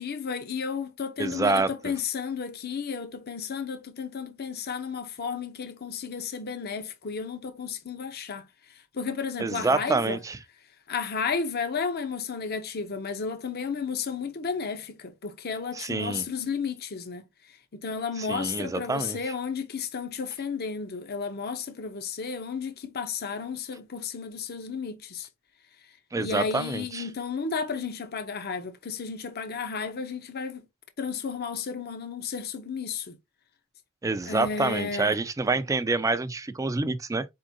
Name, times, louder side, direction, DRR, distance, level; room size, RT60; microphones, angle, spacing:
voice 1, 0.0-10.2 10.9-17.2 17.7-25.3 26.2-30.6 31.0-33.2 34.3-35.2, left 5 dB, 45° left, 0.6 m, -33 dB
voice 2, 1.2-1.9 9.4-10.4 15.7-16.2 18.2-19.2 26.1-27.1 34.0-37.3, right 3 dB, 15° right, 0.3 m, -27 dB
4.5 x 3.7 x 2.6 m
head